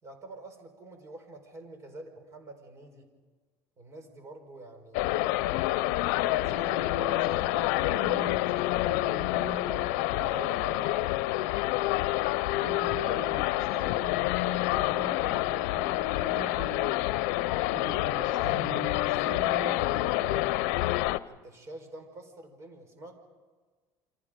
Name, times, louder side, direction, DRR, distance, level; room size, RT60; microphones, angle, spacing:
voice 1, 0.0-3.1 3.8-5.4 6.1-6.8 10.2-11.1 18.1-18.5 18.7-20.8 21.3-23.2, right 2 dB, 35° right, 6 dB, 4.9 m, -46 dB
sound 1, 4.9-21.2, left 17 dB, 90° left, 0.6 m, -28 dB
voice 2, 6.3-9.9 12.6-17.0 17.7-19.9, right 3 dB, 60° right, 1 dB, 2.8 m, -43 dB
29.0 x 25.5 x 5.2 m, 1.4 s
cardioid pair, 125°, 8 cm